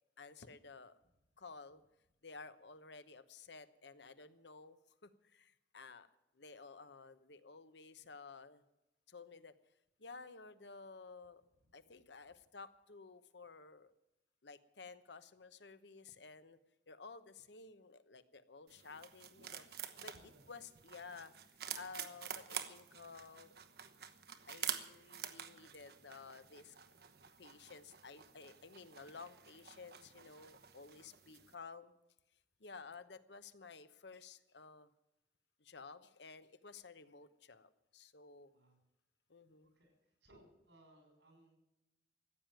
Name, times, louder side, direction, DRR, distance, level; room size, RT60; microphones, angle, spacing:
voice 1, 0.2-1.0 1.4-1.8 2.2-6.1 6.3-8.6 9.1-9.5 10.0-11.4 11.7-13.9 14.4-16.6 16.9-20.1 20.5-23.5 24.5-26.8 27.4-31.9 32.6-34.9 35.6-38.5 39.3-39.7, left 4 dB, 75° left, 12 dB, 1.0 m, -54 dB
sound 1, 18.7-31.5, right 9 dB, 60° right, 1.1 m, -48 dB
voice 2, 20.1-20.5 38.5-38.8 39.7-39.9 40.2-41.6, right 1 dB, 85° right, 4 dB, 5.9 m, -64 dB
15.0 x 9.2 x 9.1 m, 0.90 s
head